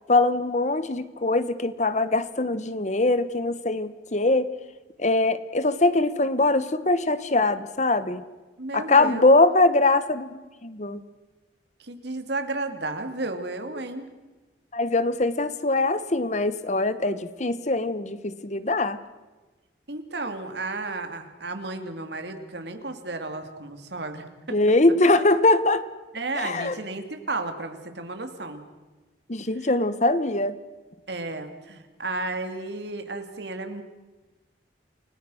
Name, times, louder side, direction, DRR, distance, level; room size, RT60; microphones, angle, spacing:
voice 1, 0.1-4.5 5.0-8.2 8.7-11.0 14.7-19.0 24.5-25.8 26.3-26.8 29.3-30.6, left 2 dB, 40° left, 14 dB, 1.1 m, -22 dB
voice 2, 8.6-9.4 11.8-14.1 19.9-24.6 26.1-28.6 29.6-29.7 31.1-33.8, right 2 dB, 65° right, 7 dB, 2.6 m, -33 dB
29.5 x 19.0 x 6.4 m, 1.2 s
head